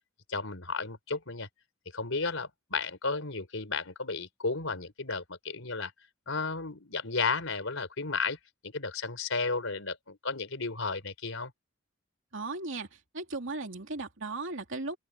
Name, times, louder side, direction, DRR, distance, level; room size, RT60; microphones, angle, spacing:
voice 1, 0.3-1.5 1.9-5.9 6.3-8.4 8.6-11.5, left 4 dB, 75° left, 4.5 m, -33 dB
voice 2, 12.3-15.0, right 3 dB, 65° right, 3.0 m, -37 dB
open air
head